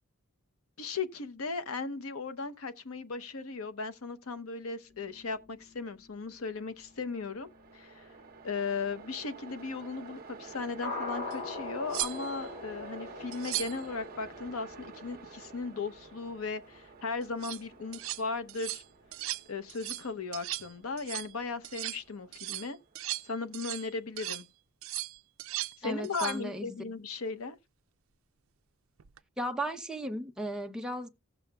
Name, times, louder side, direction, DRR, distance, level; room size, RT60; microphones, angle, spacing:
voice 1, 0.8-8.1 8.4-18.8 19.5-22.8 23.2-24.4 25.8-27.6, left 4 dB, 80° left, 0.8 m, -37 dB
sound 1, 4.9-19.7 20.0-20.1 20.4-20.5 20.9-21.0 21.4-21.5 21.7-21.8, left 3 dB, 50° left, 5.2 m, -46 dB
Train, 6.7-23.9, right 5 dB, 45° right, 0.9 m, -51 dB
sound 2, 11.3-11.4 11.9-12.5 13.3-13.9 17.2-17.6 17.9-18.2 18.5-18.8 19.1-19.4 19.7-20.1 20.3-20.7 21.0-21.3 21.6-22.0 22.3-23.9 24.2-24.4 24.8-25.8 26.0-26.4 29.0-29.2, right 17 dB, 70° right, 0.4 m, -37 dB
voice 2, 25.8-26.7 29.4-31.1, right 1 dB, 5° right, 0.7 m, -35 dB
16.5 x 7.0 x 2.3 m
head